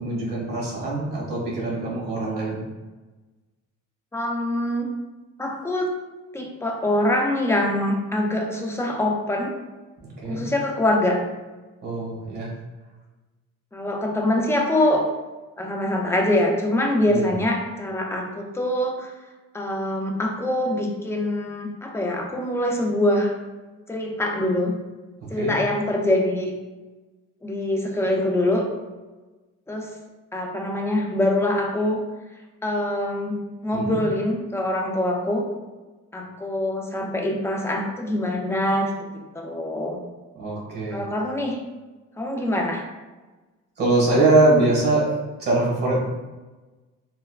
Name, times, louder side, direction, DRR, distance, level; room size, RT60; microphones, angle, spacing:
voice 1, 0.0-2.6 10.2-10.4 11.8-12.5 17.1-17.3 25.3-25.5 33.7-34.0 40.3-41.0 43.8-46.0, right 2 dB, 35° right, -4 dB, 1.5 m, -23 dB
voice 2, 4.1-4.9 5.4-6.0 6.3-9.5 10.3-11.2 13.7-15.0 15.6-19.1 19.5-23.3 23.9-24.8 25.3-26.5 27.4-28.7 29.7-29.9 30.3-32.0 32.6-35.5 36.1-40.0 40.9-41.6 42.2-42.9, left 1 dB, 10° left, 1 dB, 0.4 m, -24 dB
3.1 x 2.2 x 2.3 m, 1.2 s
cardioid pair, 90°, 30 cm